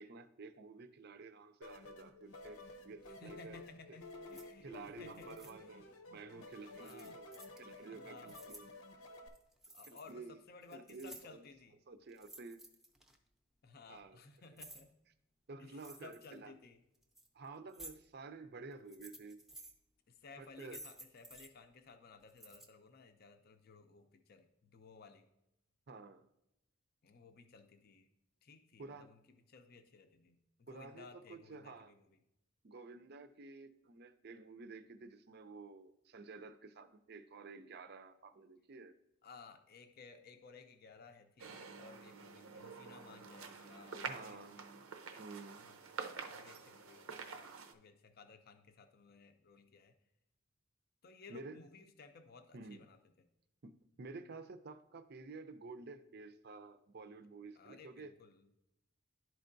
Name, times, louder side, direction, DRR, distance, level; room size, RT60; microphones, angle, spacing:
voice 1, 0.0-3.6 3.9-4.0 4.6-7.3 7.6-8.7 9.8-10.4 10.7-11.5 11.9-12.6 13.9-14.2 15.5-16.5 17.3-19.4 20.4-20.8 25.9-26.3 28.8-29.1 30.7-31.9 32.6-39.0 44.1-44.6 45.2-45.7 51.3-51.6 52.5-52.8 53.6-58.1, right 3 dB, 50° right, 10 dB, 0.5 m, -51 dB
sound 1, 1.6-9.3, left 2 dB, 80° left, 0.8 m, -53 dB
voice 2, 3.2-5.8 6.6-7.2 7.9-8.4 9.7-11.8 13.6-14.9 15.6-16.8 20.1-25.3 27.0-28.1 28.4-32.2 39.2-44.6 45.6-45.8 46.0-49.9 51.0-53.0 57.6-58.5, left 4 dB, 45° left, 7 dB, 0.5 m, -58 dB
sound 2, 4.3-4.4 5.1-5.5 6.8-7.6 8.1-8.7 9.3-10.1 10.5-11.5 12.1-13.2 14.0-14.8 15.7-16.4 16.9-17.3 17.7-17.9 18.7-19.7 20.4-21.5 22.3-22.7, right 1 dB, ahead, 0.6 m, -54 dB
sound 3, 41.4-47.7, right 5 dB, 85° right, 0.7 m, -48 dB
11.5 x 4.5 x 2.6 m, 0.85 s
head